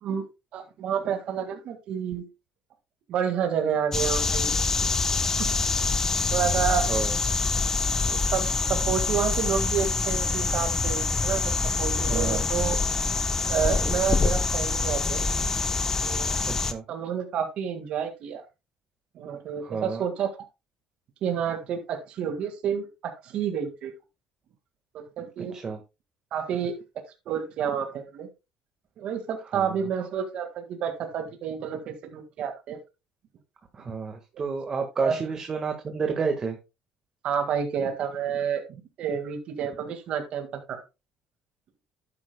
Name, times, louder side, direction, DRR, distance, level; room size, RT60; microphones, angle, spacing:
voice 1, 0.5-2.2 3.1-4.5 5.4-5.5 6.3-6.9 8.0-11.5 11.8-12.8 13.5-15.2 16.0-16.4 16.9-18.4 19.2-20.3 21.2-23.9 24.9-25.6 26.3-26.7 27.3-28.3 29.0-32.8 35.0-35.2 37.2-38.6 39.0-40.8, right 8 dB, 55° right, 5 dB, 1.8 m, -29 dB
sound 1, 3.9-16.7, left 4 dB, 20° left, 0.9 m, -25 dB
Water, 8.6-16.5, right 1 dB, 5° right, 2.9 m, -43 dB
voice 2, 12.1-12.4 16.6-16.8 19.6-20.0 25.5-25.8 29.5-29.8 33.7-36.6, right 5 dB, 30° right, 4 dB, 1.5 m, -30 dB
11.5 x 8.7 x 2.2 m, 0.26 s
cardioid pair, 125°, 2 cm